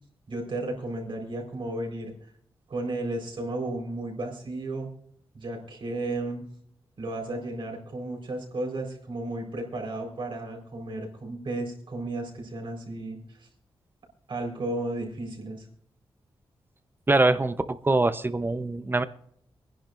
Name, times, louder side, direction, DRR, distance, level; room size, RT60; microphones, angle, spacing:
voice 1, 0.3-2.1 2.7-4.9 5.3-6.4 7.0-13.5 14.3-15.7, right 2 dB, 60° right, 0 dB, 4.5 m, -33 dB
voice 2, 17.1-19.0, right 2 dB, 25° right, 12 dB, 0.8 m, -23 dB
25.0 x 10.5 x 2.6 m, 0.69 s
wide cardioid pair, 90°, 9 cm